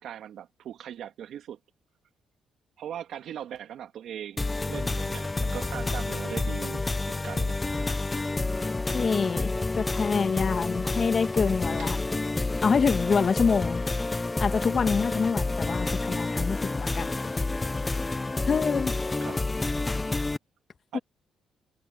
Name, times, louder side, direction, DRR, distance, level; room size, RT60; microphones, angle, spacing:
voice 1, 0.0-1.6 2.8-8.0 11.3-11.5 11.8-11.9 19.2-19.4 19.9-20.1 20.9-21.0, right 10 dB, 70° right, 2.9 m, -40 dB
sound 1, 4.4-20.4, left 2 dB, 20° left, 0.7 m, -29 dB
voice 2, 8.9-9.5 9.8-12.0 12.6-13.8 14.4-17.1 18.5-19.0 20.9-21.0, left 5 dB, 45° left, 1.8 m, -26 dB
cardioid pair, 90°, 0 cm